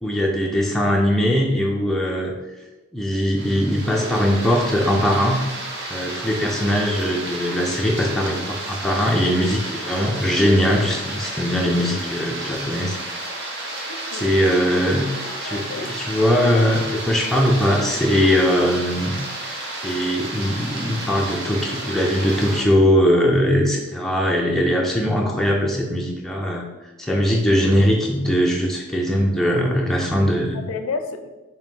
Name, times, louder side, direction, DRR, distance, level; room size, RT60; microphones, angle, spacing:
voice 1, 0.0-2.3 2.9-5.5 5.9-13.0 14.1-15.1 15.4-19.2 19.8-26.6 27.0-30.6, equal, ahead, -2 dB, 0.4 m, -20 dB
sound 1, 3.4-22.6, right 2 dB, 55° right, 0.8 m, -32 dB
voice 2, 13.9-14.4 15.2-15.9 16.5-16.6 27.5-27.6 30.5-31.4, left 4 dB, 75° left, 7 dB, 0.4 m, -32 dB
3.9 x 2.7 x 3.6 m, 1.1 s
head